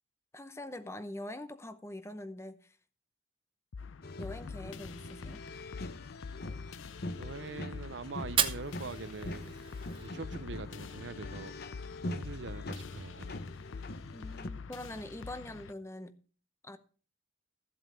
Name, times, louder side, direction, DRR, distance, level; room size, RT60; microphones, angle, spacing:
voice 1, 0.3-2.8 4.2-5.4 14.1-16.2 16.6-16.8, left 1 dB, 15° left, 0.7 m, -44 dB
sound 1, 3.7-15.7, left 5 dB, 80° left, 0.5 m, -46 dB
sound 2, 4.0-14.5, left 2 dB, 55° left, 0.9 m, -44 dB
voice 2, 7.2-9.6 10.0-11.5 12.1-13.3, right 4 dB, 65° right, 0.6 m, -43 dB
Fire, 8.2-10.2, right 8 dB, 25° right, 0.8 m, -34 dB
14.5 x 7.7 x 5.0 m
head